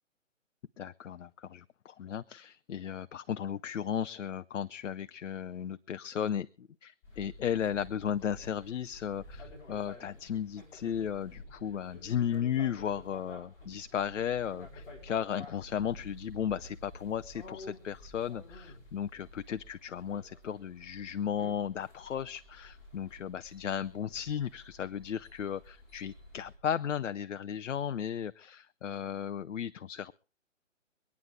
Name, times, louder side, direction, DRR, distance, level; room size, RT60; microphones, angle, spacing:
voice 1, 0.8-30.1, left 9 dB, 70° left, 12 dB, 0.6 m, -35 dB
sound 1, 7.0-26.6, left 1 dB, 15° left, 5.7 m, -51 dB
24.5 x 9.7 x 3.7 m, 0.37 s
hypercardioid pair, 165°, 39 cm